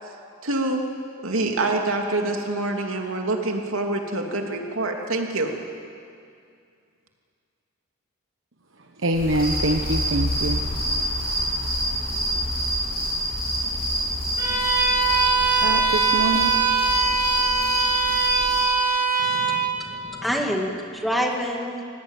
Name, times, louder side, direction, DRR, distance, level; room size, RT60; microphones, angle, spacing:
voice 1, 0.4-0.8 1.2-5.5, right 2 dB, 85° right, 2 dB, 2.9 m, -26 dB
voice 2, 9.0-10.6 15.6-16.5, right 1 dB, 65° right, 4 dB, 1.2 m, -24 dB
sound 1, 9.1-18.6, equal, 45° left, 7.4 m, -26 dB
Bowed string instrument, 14.4-19.7, right 5 dB, 15° right, 5.7 m, -22 dB
voice 3, 19.2-21.8, equal, ahead, 0 dB, 2.1 m, -27 dB
25.5 x 18.0 x 9.1 m, 2.4 s
head